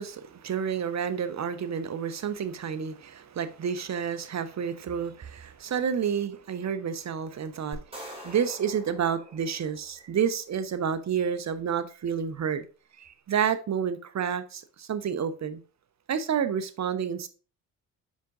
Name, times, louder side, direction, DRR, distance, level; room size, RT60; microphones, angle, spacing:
voice 1, 0.0-7.8 8.2-12.7 13.0-15.6 16.1-17.3, right 7 dB, 40° right, 0.9 m, -30 dB
sound 1, 7.7-10.1, equal, 15° right, 2.9 m, -44 dB
5.3 x 5.1 x 3.7 m
hypercardioid pair, 60°, 43 cm